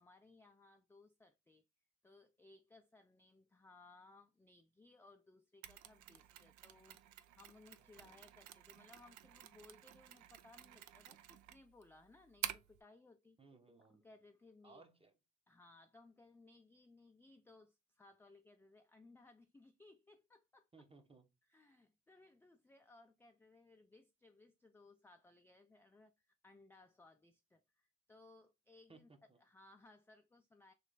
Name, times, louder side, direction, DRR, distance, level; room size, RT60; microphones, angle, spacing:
voice 1, 0.0-1.6 2.0-13.4 13.9-14.9 15.5-20.7 21.5-29.1 29.4-30.7, left 2 dB, 10° left, 0.3 m, -64 dB
Mechanisms, 5.6-12.8, right 12 dB, 75° right, 0.5 m, -50 dB
voice 2, 13.4-14.0 14.6-15.1 20.7-21.3 28.9-29.4, right 3 dB, 20° right, 0.8 m, -62 dB
3.3 x 3.0 x 3.8 m
cardioid pair, 90°, 30 cm